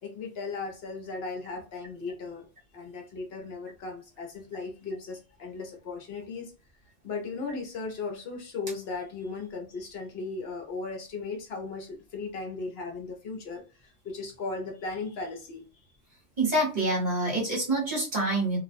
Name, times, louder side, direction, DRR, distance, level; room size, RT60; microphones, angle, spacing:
voice 1, 0.0-2.5 2.7-6.5 7.0-15.9, left 3 dB, 60° left, 2 dB, 0.7 m, -37 dB
voice 2, 16.4-18.6, right 2 dB, 35° right, -3 dB, 1.1 m, -26 dB
2.4 x 2.0 x 2.4 m, 0.33 s
omnidirectional pair, 1.3 m